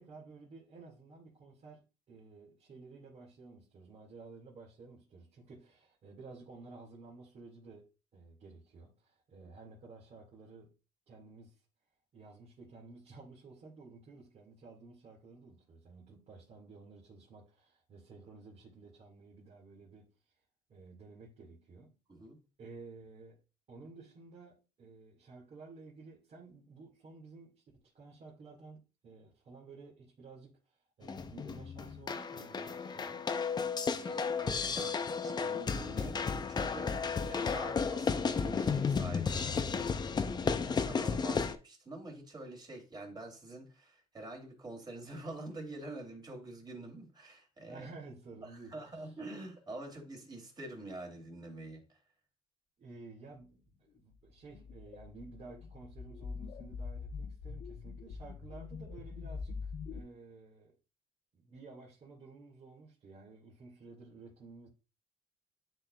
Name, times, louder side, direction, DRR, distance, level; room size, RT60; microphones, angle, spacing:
voice 1, 0.0-10.7 11.1-11.5 12.1-20.1 20.7-21.9 22.6-23.4 23.7-30.6 31.0-33.3 47.7-49.0 52.8-60.7 61.3-64.7, right 3 dB, 50° right, 2.2 m, -53 dB
voice 2, 22.1-22.5 33.9-47.9 48.4-52.0, right 2 dB, 30° right, 2.9 m, -47 dB
sound 1, 31.0-41.6, left 5 dB, 30° left, 0.6 m, -33 dB
sound 2, 54.2-60.0, left 5 dB, 65° left, 1.1 m, -44 dB
10.5 x 4.4 x 2.4 m
cardioid pair, 105°, 15 cm